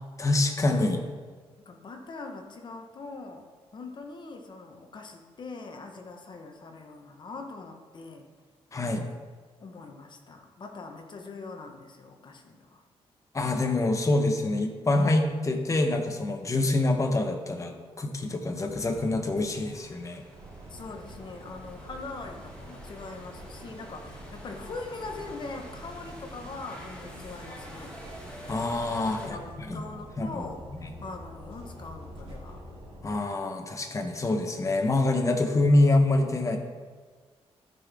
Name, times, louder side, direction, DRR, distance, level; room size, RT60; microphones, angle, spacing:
voice 1, 0.2-1.0 8.7-9.1 13.3-20.2 28.5-29.4 29.7-29.8 30.2-30.5 30.8-30.9 33.0-36.6, left 2 dB, 30° left, 4 dB, 1.1 m, -26 dB
voice 2, 1.6-3.5 3.7-8.3 8.7-9.2 9.6-12.8 20.7-28.0 29.1-30.6 31.0-32.6, left 3 dB, 45° left, 4 dB, 1.2 m, -42 dB
sound 1, 18.6-29.3, equal, 10° left, 2.3 m, -48 dB
sound 2, 20.3-33.1, equal, 70° right, 2.6 m, -46 dB
13.5 x 5.8 x 3.6 m, 1.5 s
cardioid pair, 110°, 11 cm